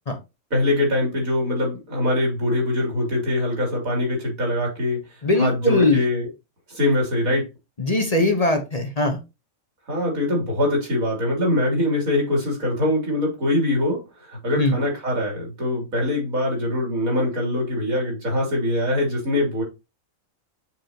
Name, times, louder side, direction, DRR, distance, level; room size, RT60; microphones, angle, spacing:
voice 1, 0.5-5.0 5.4-6.3 6.7-7.5 9.9-19.6, left 1 dB, 90° right, 3.6 m, -23 dB
voice 2, 5.2-6.0 7.8-9.2 14.6-14.8, left 2 dB, 30° left, 1.1 m, -20 dB
6.8 x 5.3 x 2.9 m
omnidirectional pair, 1.4 m